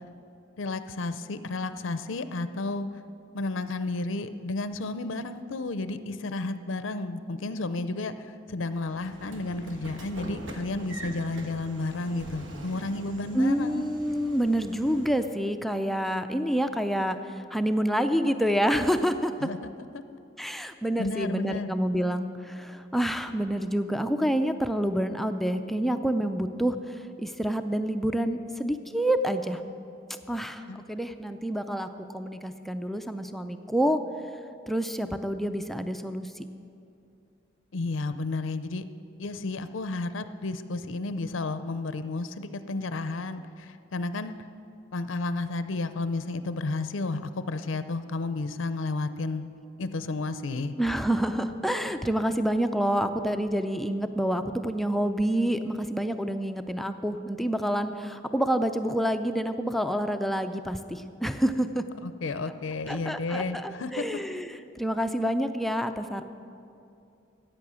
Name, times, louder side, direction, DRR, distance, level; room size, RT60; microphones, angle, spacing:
voice 1, 0.6-2.9 3.3-13.9 19.4-19.6 19.9-20.0 21.0-21.7 30.7-30.9 37.7-38.8 39.2-44.3 44.9-49.5 49.8-50.7 62.0-64.2, left 2 dB, 85° left, 11 dB, 0.6 m, -32 dB
Train / Sliding door, 8.8-15.3, right 1 dB, 80° right, 1.3 m, -43 dB
voice 2, 13.3-19.3 20.4-29.6 30.3-34.0 34.7-36.3 50.8-61.8 62.9-64.5 64.8-66.2, equal, ahead, 8 dB, 0.4 m, -28 dB
14.5 x 8.9 x 6.3 m, 2.6 s
head